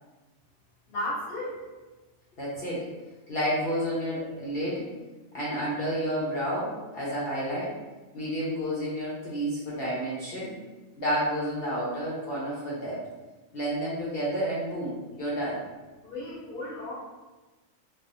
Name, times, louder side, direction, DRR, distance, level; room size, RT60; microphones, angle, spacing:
voice 1, 0.9-1.6 16.0-16.9, left 1 dB, 80° left, -10 dB, 1.4 m, -34 dB
voice 2, 2.4-2.9 3.3-4.9 5.3-7.8 8.1-10.6 11.0-13.0 13.5-15.6, equal, 55° left, -7 dB, 0.8 m, -30 dB
3.2 x 2.1 x 2.6 m, 1.2 s
omnidirectional pair, 1.4 m